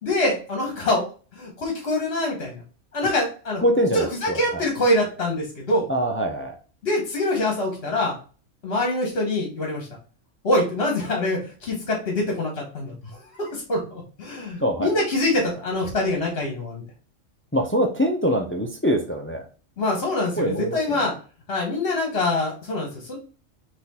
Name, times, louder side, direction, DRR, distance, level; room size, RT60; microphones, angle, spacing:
voice 1, 0.0-1.0 1.3-2.6 2.9-3.6 3.9-5.9 6.8-8.1 8.6-9.9 10.4-12.9 13.4-16.8 19.8-21.1 21.5-23.2, left 1 dB, 55° left, -1 dB, 1.4 m, -24 dB
voice 2, 3.6-4.6 5.9-6.6 14.6-14.9 17.5-19.4 20.4-21.1, equal, 20° left, 3 dB, 0.3 m, -24 dB
4.1 x 3.1 x 4.1 m, 0.37 s
omnidirectional pair, 1.3 m